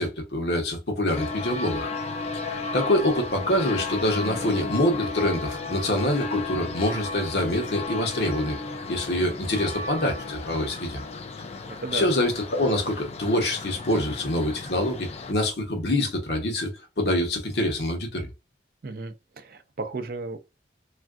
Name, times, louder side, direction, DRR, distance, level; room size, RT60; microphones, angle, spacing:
voice 1, 0.0-1.9 2.5-8.6 8.9-11.0 11.9-18.3, left 1 dB, 65° left, 0.9 m, -25 dB
sound 1, 1.1-15.3, left 3 dB, 35° left, 0.3 m, -34 dB
voice 2, 11.7-12.1 18.8-20.4, right 3 dB, 55° right, 0.4 m, -34 dB
3.4 x 2.5 x 2.4 m
head